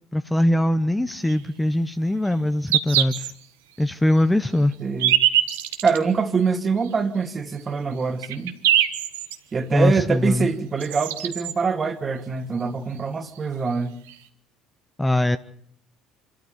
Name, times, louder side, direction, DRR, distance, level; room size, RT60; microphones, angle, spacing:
voice 1, 0.1-3.3 3.8-4.7 9.7-10.5 15.0-15.4, left 1 dB, 10° left, 0.9 m, -21 dB
sound 1, 1.2-1.4 2.3-2.4 2.7-3.3 3.8-3.9 4.7-6.0 6.8-6.9 7.6-7.7 8.0-9.4 10.5-10.6 10.8-11.5 13.0-13.1 13.3-13.4 14.1-14.2, right 11 dB, 80° right, 1.5 m, -23 dB
voice 2, 4.8-5.1 5.8-8.6 9.5-13.9, right 5 dB, 35° right, 2.2 m, -24 dB
26.5 x 13.0 x 9.2 m
hypercardioid pair, 65°, 0 cm